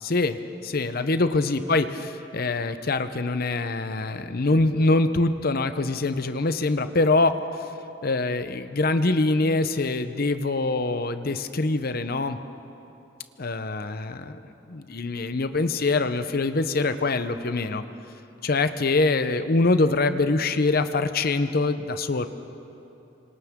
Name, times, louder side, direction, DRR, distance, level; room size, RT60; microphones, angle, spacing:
voice 1, 0.0-7.4 8.0-12.4 13.4-14.4 14.7-17.8 18.4-22.3, left 3 dB, 50° left, 10 dB, 0.8 m, -24 dB
27.0 x 25.5 x 3.7 m, 2.9 s
head